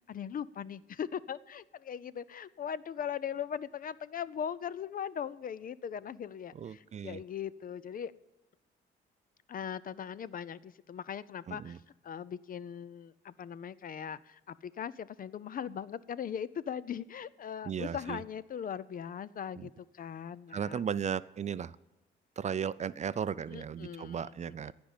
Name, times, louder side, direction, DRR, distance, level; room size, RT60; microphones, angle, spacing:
voice 1, 0.1-8.1 9.5-11.8 12.0-20.8 23.5-24.7, left 8 dB, 45° left, 0.5 m, -40 dB
voice 2, 6.5-7.2 11.5-11.8 17.7-18.2 19.6-19.7 20.5-21.8 22.4-24.7, right 7 dB, 35° right, 0.4 m, -36 dB
15.5 x 5.2 x 8.9 m
cardioid pair, 90°, 20 cm